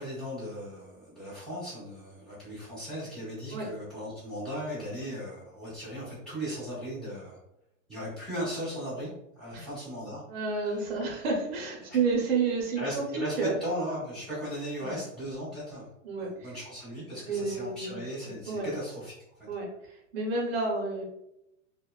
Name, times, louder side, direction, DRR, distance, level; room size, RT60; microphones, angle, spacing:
voice 1, 0.0-7.4 7.9-9.1 9.4-10.2 11.9-12.0 12.8-15.9 16.3-19.1, equal, ahead, -13 dB, 0.7 m, -37 dB
voice 2, 10.3-13.6 14.8-15.0 16.0-16.6 17.2-18.0 18.5-18.7 19.5-19.7 20.1-21.0, right 4 dB, 50° right, 0 dB, 0.8 m, -30 dB
2.7 x 2.1 x 2.2 m, 0.84 s
supercardioid pair, 170°, 40 cm